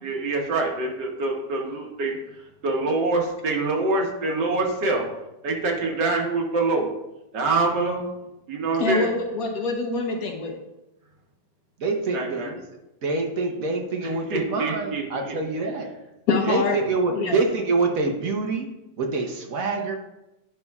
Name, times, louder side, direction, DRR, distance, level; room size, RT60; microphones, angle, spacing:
voice 1, 0.0-2.2 2.6-5.1 5.4-6.9 7.3-8.1 8.5-9.1 12.1-12.5 14.3-15.4, right 3 dB, 80° right, 0 dB, 1.7 m, -25 dB
voice 2, 8.8-10.6 16.3-16.8 17.1-17.4, left 4 dB, 60° left, 2 dB, 1.3 m, -25 dB
voice 3, 11.8-12.6 13.0-15.9 16.5-18.7 19.0-20.0, right 3 dB, 60° right, 2 dB, 1.1 m, -26 dB
9.8 x 5.4 x 2.3 m, 0.93 s
omnidirectional pair, 1.8 m